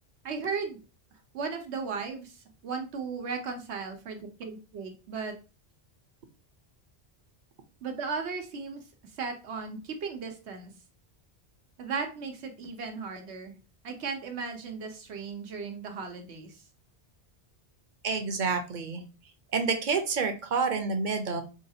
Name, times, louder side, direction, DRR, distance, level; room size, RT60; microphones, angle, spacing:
voice 1, 0.2-0.8 1.3-5.4 7.8-8.8 9.2-10.7 11.8-13.6 13.8-16.6, right 5 dB, 90° right, 4 dB, 1.1 m, -36 dB
voice 2, 18.0-19.0 19.5-21.4, right 4 dB, 50° right, 6 dB, 0.7 m, -28 dB
4.8 x 2.4 x 2.7 m, 0.32 s
omnidirectional pair, 1.1 m